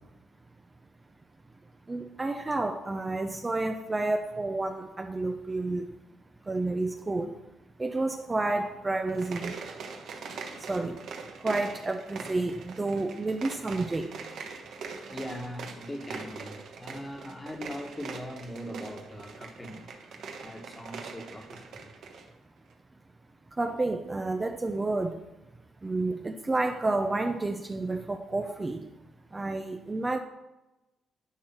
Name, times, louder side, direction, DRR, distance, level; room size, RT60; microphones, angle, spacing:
voice 1, 1.9-5.8 6.5-7.3 7.8-9.6 10.7-11.0 11.4-14.1 23.6-25.2 25.8-28.9 29.3-30.2, right 2 dB, 20° right, 5 dB, 0.6 m, -30 dB
sound 1, 9.0-22.3, right 5 dB, 70° right, 1.2 m, -42 dB
voice 2, 15.1-19.9 20.4-21.8, equal, 15° left, 4 dB, 1.4 m, -40 dB
10.5 x 4.7 x 5.9 m, 1.0 s
cardioid pair, 90°, 0 cm